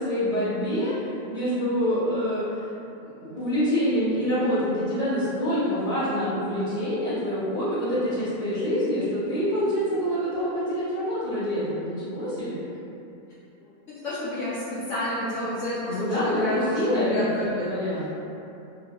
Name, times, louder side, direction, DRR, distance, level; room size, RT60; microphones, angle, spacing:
voice 1, 0.0-2.7 3.0-12.6 15.9-18.1, equal, 5° left, -12 dB, 0.6 m, -26 dB
voice 2, 13.6-17.7, left 1 dB, 65° left, -10 dB, 0.8 m, -29 dB
2.9 x 2.1 x 2.9 m, 2.7 s
omnidirectional pair, 1.6 m